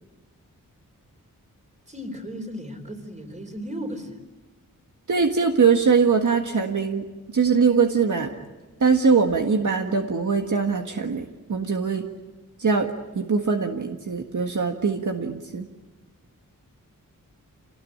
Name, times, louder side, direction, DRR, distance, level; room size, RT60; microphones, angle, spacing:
voice 1, 1.9-4.2, equal, 20° right, 5 dB, 4.3 m, -35 dB
voice 2, 5.1-7.0 7.3-8.3 8.8-12.0 12.6-12.9 13.1-15.7, right 5 dB, 65° right, 3 dB, 1.6 m, -22 dB
27.5 x 19.0 x 8.8 m, 1.2 s
wide cardioid pair, 105°, 33 cm